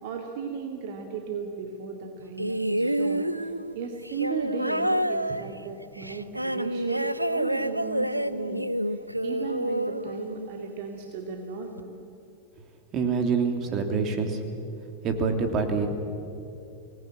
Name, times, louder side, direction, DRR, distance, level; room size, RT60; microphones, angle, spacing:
voice 1, 0.0-8.7 9.2-12.0, right 5 dB, 50° right, 3 dB, 2.2 m, -36 dB
sound 1, 2.4-10.8 11.8-11.9, right 1 dB, 85° right, 0.6 m, -28 dB
voice 2, 12.9-14.4 15.0-15.9, right 5 dB, 35° right, 5 dB, 3.0 m, -26 dB
25.0 x 19.5 x 8.6 m, 2.8 s
figure-of-eight pair, 90°, 0 cm